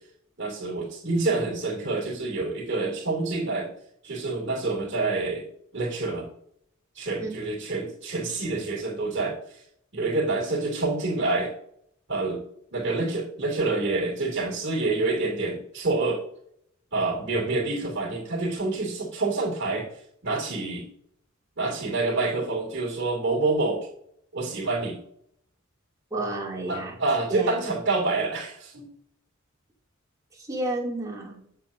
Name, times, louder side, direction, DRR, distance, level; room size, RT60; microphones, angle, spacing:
voice 1, 0.4-3.7 4.0-5.5 5.7-6.3 6.9-9.4 9.9-11.5 12.1-12.4 12.7-16.2 16.9-19.9 20.2-20.8 21.6-23.9 24.3-25.0 26.7-28.9, right 3 dB, 60° right, -3 dB, 2.8 m, -27 dB
voice 2, 26.1-27.0 27.3-27.5 30.5-31.4, right 2 dB, 15° right, -4 dB, 2.8 m, -30 dB
8.5 x 7.5 x 2.7 m, 0.68 s
head